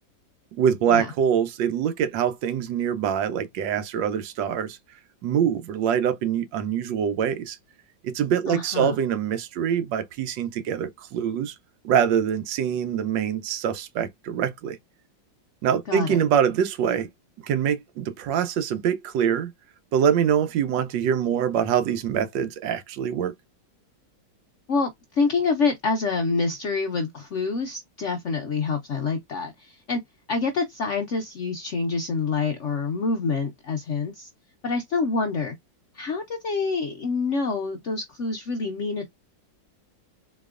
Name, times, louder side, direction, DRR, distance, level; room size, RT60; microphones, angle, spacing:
voice 1, 0.5-4.8 5.2-7.6 8.0-11.5 11.8-14.8 15.6-17.1 17.4-19.5 19.9-23.3, right 8 dB, 75° right, 1.3 m, -24 dB
voice 2, 8.5-9.0 15.9-16.2 24.7-30.0 30.3-34.3 34.6-35.6 35.9-39.1, left 4 dB, 90° left, 0.6 m, -26 dB
4.1 x 2.9 x 2.4 m
omnidirectional pair, 2.1 m